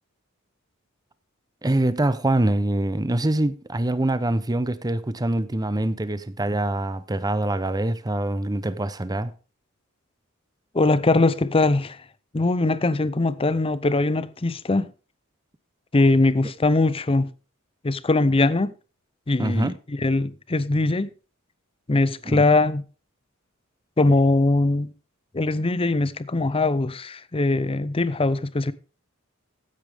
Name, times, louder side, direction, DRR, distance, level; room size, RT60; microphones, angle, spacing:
voice 1, 1.6-9.3 19.4-19.7 22.3-22.4, right 1 dB, 20° right, 0.7 m, -24 dB
voice 2, 10.7-12.0 12.3-14.9 15.9-17.3 17.8-18.7 19.3-21.1 21.9-22.9 24.0-24.9 25.3-28.7, left 2 dB, 25° left, 0.6 m, -21 dB
15.0 x 8.6 x 3.5 m
head